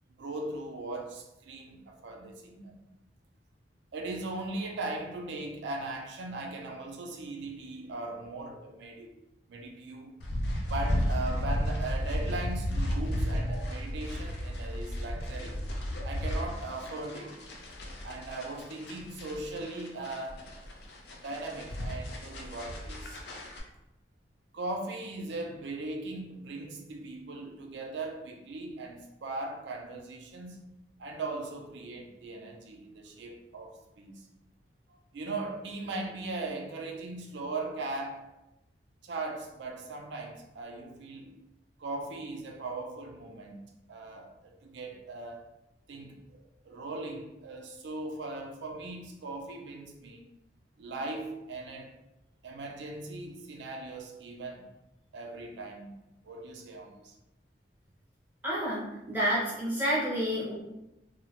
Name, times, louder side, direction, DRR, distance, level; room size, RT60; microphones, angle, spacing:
voice 1, 0.2-2.8 3.9-9.1 9.5-10.1 10.7-15.6 16.0-17.4 18.0-20.5 21.2-23.2 24.5-30.7 31.0-34.3 34.9-38.3 39.0-41.3 41.8-43.6 43.9-45.5 45.9-50.2 50.8-51.9 52.4-54.7 55.1-55.9 56.2-57.1, right 2 dB, 75° right, 2 dB, 0.4 m, -39 dB
sound 1, 10.2-23.6, equal, 65° left, 0.4 m, -33 dB
voice 2, 58.4-60.5, equal, 10° right, -7 dB, 0.6 m, -29 dB
2.2 x 2.1 x 2.8 m, 0.93 s
head